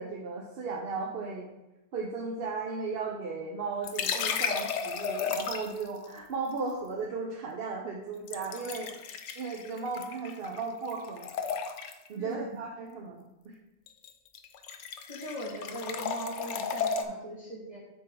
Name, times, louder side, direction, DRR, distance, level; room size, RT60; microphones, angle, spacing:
voice 1, 0.0-1.5 1.9-11.4 12.1-13.5, right 4 dB, 60° right, 1 dB, 0.8 m, -36 dB
sound 1, 3.8-5.9 8.3-10.6 10.9-12.1 13.9-14.1 14.3-17.0, left 6 dB, 85° left, 1.0 m, -33 dB
voice 2, 12.2-12.6 15.1-17.8, equal, 30° right, -6 dB, 1.7 m, -40 dB
9.6 x 4.0 x 3.7 m, 0.99 s
omnidirectional pair, 1.2 m